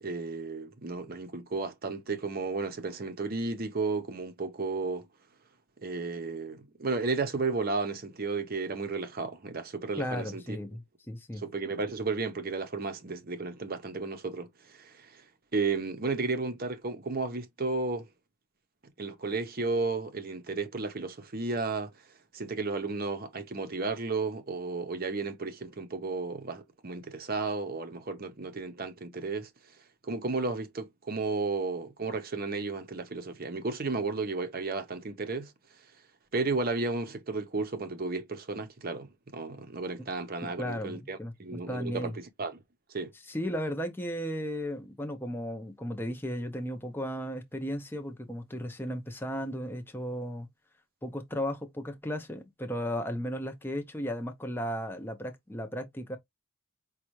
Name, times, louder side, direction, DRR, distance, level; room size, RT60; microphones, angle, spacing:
voice 1, 0.0-5.1 5.8-10.6 11.4-15.2 15.5-18.1 19.0-21.9 22.3-29.5 30.0-35.5 35.8-35.9 36.3-42.6 42.9-43.1, right 3 dB, 40° right, 0.7 m, -33 dB
voice 2, 10.0-11.4 40.4-42.1 43.3-50.5 51.0-56.2, equal, 10° left, 0.6 m, -35 dB
5.2 x 2.3 x 3.0 m
head